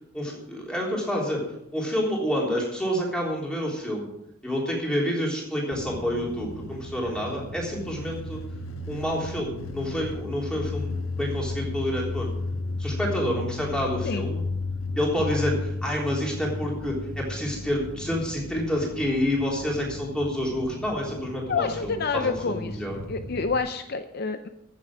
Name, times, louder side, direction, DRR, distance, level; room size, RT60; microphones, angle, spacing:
voice 1, 0.1-1.4 1.7-4.1 4.4-8.4 8.9-12.3 12.8-14.4 15.0-23.0, equal, 5° left, -3 dB, 3.6 m, -28 dB
sound 1, 5.7-23.6, left 2 dB, 75° left, 1.3 m, -34 dB
voice 2, 21.5-22.8 23.1-24.5, left 4 dB, 45° left, 9 dB, 0.6 m, -28 dB
15.0 x 7.7 x 6.2 m, 0.82 s
head